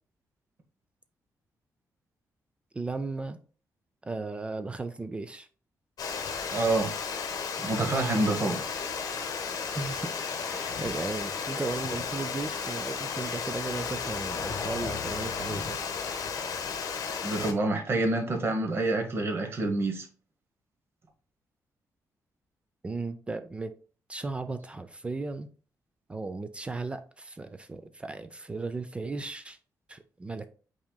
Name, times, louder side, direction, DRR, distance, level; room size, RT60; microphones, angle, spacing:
voice 1, 2.7-3.4 4.0-5.5 9.8-10.1 10.4-15.8 22.8-23.7 24.1-25.5 26.1-29.6 29.9-30.5, right 3 dB, 15° right, 0.3 m, -35 dB
Water, 6.0-17.5, left 6 dB, 70° left, 0.9 m, -34 dB
voice 2, 6.5-6.9 7.6-8.7 17.2-20.1, right 2 dB, 40° right, 0.9 m, -27 dB
5.8 x 4.1 x 2.2 m
wide cardioid pair, 155°, 6 cm